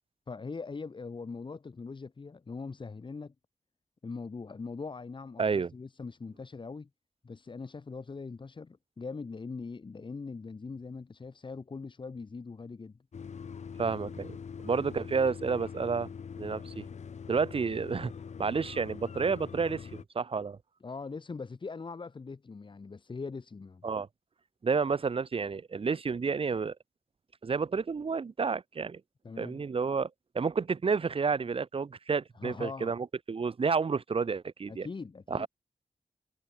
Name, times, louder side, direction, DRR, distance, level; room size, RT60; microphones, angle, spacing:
voice 1, 0.3-3.3 4.0-6.9 7.2-13.0 20.8-23.9 29.2-29.6 32.3-32.9 34.7-35.5, left 4 dB, 40° left, 6.0 m, -41 dB
voice 2, 5.4-5.7 13.8-14.4 14.6-16.1 16.4-16.9 17.3-18.1 18.4-20.6 23.8-24.1 24.6-26.7 27.4-29.0 29.4-30.1 30.3-34.9 35.3-35.5, right 5 dB, 50° right, 2.3 m, -30 dB
sound 1, 13.1-20.0, left 6 dB, 70° left, 3.5 m, -43 dB
wide cardioid pair, 140°, 12 cm